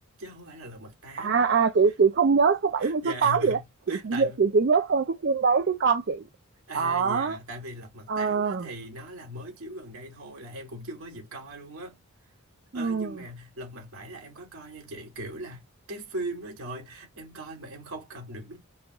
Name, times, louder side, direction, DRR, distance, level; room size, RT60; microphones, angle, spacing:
voice 1, 0.2-1.4 2.8-4.4 6.7-12.0 12.7-18.6, right 1 dB, 75° right, 2.3 m, -40 dB
voice 2, 1.2-3.6 3.9-6.3 6.7-7.4 8.1-8.7 12.7-13.1, right 5 dB, 50° right, 0.4 m, -23 dB
5.5 x 3.0 x 2.4 m
head